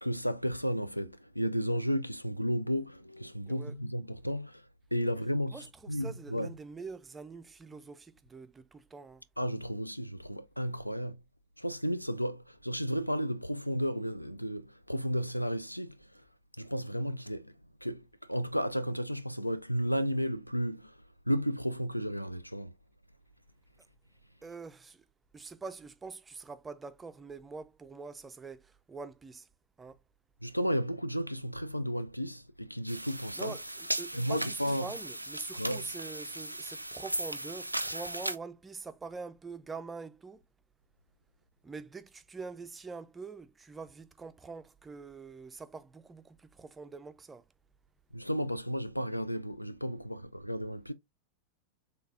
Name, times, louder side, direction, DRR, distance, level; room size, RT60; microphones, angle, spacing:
voice 1, 0.0-4.6 4.9-6.5 9.4-11.2 11.6-16.0 16.6-17.5 17.8-20.9 21.3-22.7 30.4-33.6 34.1-34.9 35.6-35.9 48.1-50.9, equal, 90° left, 0.3 m, -33 dB
voice 2, 5.5-9.2 24.4-25.0 25.3-29.5 29.8-30.0 33.4-40.4 41.6-47.4, right 4 dB, 15° right, 0.4 m, -45 dB
sound 1, 32.9-38.4, right 1 dB, 85° right, 0.3 m, -37 dB
3.8 x 3.4 x 2.6 m
figure-of-eight pair, 90°, 0 cm